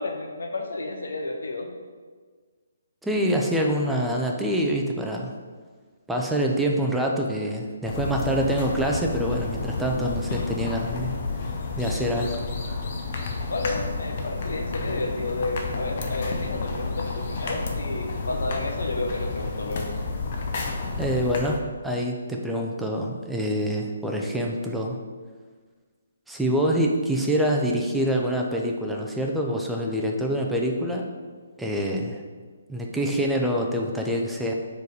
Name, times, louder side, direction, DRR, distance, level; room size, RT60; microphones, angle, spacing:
voice 1, 0.0-1.7 13.5-19.9, left 2 dB, 65° left, 3 dB, 1.0 m, -31 dB
voice 2, 3.0-5.3 6.1-11.2 11.8-12.4 12.7-12.8 21.0-25.0 26.3-31.1 31.6-32.2 32.7-34.5, equal, 5° right, 0 dB, 0.6 m, -26 dB
sound 1, 7.9-21.6, left 4 dB, 45° left, 0.7 m, -31 dB
4.6 x 4.6 x 4.9 m, 1.5 s
figure-of-eight pair, 135°, 0 cm